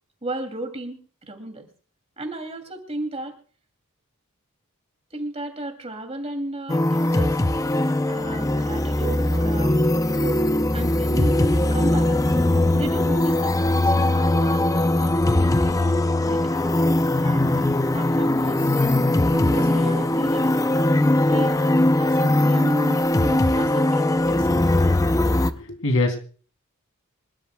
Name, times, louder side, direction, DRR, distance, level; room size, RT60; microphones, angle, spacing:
voice 1, 0.2-1.7 2.2-3.3 5.1-7.4 8.1-9.8 10.1-10.5 10.7-11.4 11.7-12.2 12.7-13.5 13.8-15.8 16.2-16.9 17.2-18.9 19.3-20.6 21.2-21.6 22.0-24.7, right 1 dB, 30° right, 6 dB, 2.7 m, -34 dB
sound 1, 6.7-25.5, left 1 dB, 15° left, 0.6 m, -20 dB
voice 2, 25.5-26.2, left 2 dB, 75° left, 6 dB, 3.0 m, -23 dB
26.0 x 12.0 x 2.3 m, 0.40 s
head